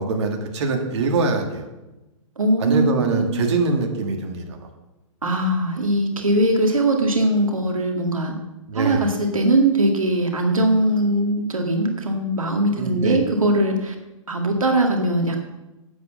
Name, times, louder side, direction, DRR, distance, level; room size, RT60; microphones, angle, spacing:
voice 1, 0.0-1.7 2.6-4.7 8.7-9.1 12.8-13.2, right 3 dB, 55° right, 3 dB, 2.1 m, -23 dB
voice 2, 2.4-3.5 5.2-8.4 8.7-14.0 14.3-15.4, right 1 dB, 85° right, 3 dB, 1.9 m, -21 dB
9.5 x 7.9 x 7.0 m, 1.0 s
figure-of-eight pair, 120°, 17 cm